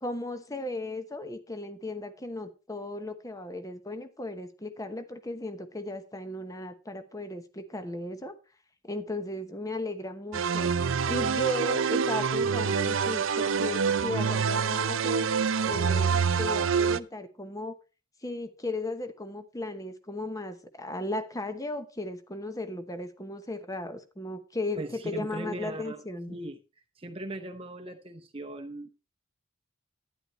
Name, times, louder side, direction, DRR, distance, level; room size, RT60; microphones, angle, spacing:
voice 1, 0.0-8.3 8.8-10.7 11.1-15.3 15.6-17.8 18.2-26.3, left 1 dB, 15° left, 0.9 m, -36 dB
sound 1, 10.3-17.0, right 6 dB, 60° right, 0.5 m, -26 dB
voice 2, 24.8-26.0 26.3-26.6 27.0-28.9, right 1 dB, 25° right, 0.8 m, -39 dB
12.0 x 10.0 x 3.2 m
head